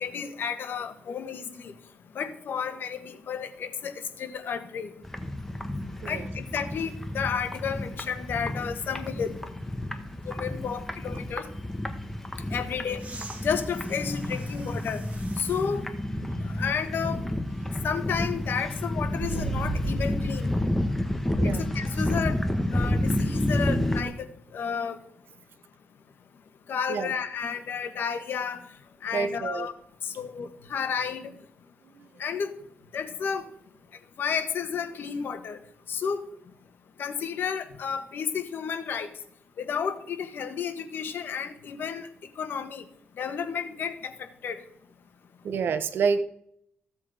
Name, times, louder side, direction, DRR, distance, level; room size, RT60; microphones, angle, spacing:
voice 1, 0.0-1.7 2.1-4.9 6.1-9.3 10.3-11.5 12.5-13.0 13.4-15.0 15.4-15.8 16.6-17.2 17.8-20.5 21.7-22.3 22.7-24.2 24.5-25.0 26.7-28.6 29.0-29.7 30.2-31.3 32.2-32.5 32.9-33.4 34.2-35.6 35.9-36.2 37.0-39.1 39.6-42.1 42.4-42.8 43.2-44.6, left 6 dB, 65° left, 9 dB, 1.4 m, -31 dB
sound 1, 5.0-24.0, left 1 dB, 5° left, 1.3 m, -30 dB
sound 2, 13.0-15.7 16.4-16.5 19.2-20.4 22.3-22.4, right 2 dB, 35° right, 2.8 m, -36 dB
voice 2, 29.1-29.7 45.4-46.2, right 5 dB, 65° right, 11 dB, 1.1 m, -27 dB
15.5 x 7.6 x 5.0 m, 0.70 s
cardioid pair, 115°, 4 cm